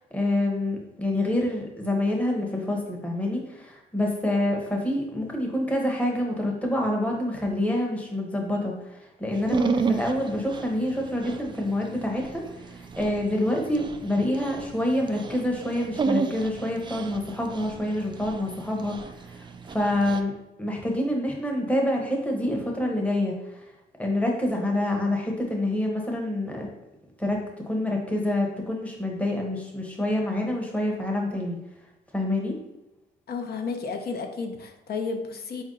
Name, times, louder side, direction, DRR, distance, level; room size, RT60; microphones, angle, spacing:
voice 1, 0.1-23.6 24.0-26.7 27.2-31.6 32.1-32.6, left 1 dB, 5° left, 0 dB, 0.9 m, -27 dB
Dog, 9.4-20.2, right 4 dB, 25° right, 0.3 m, -32 dB
voice 2, 33.3-35.6, left 4 dB, 50° left, 5 dB, 0.7 m, -32 dB
4.3 x 2.6 x 3.8 m, 0.95 s
cardioid pair, 90°, 20 cm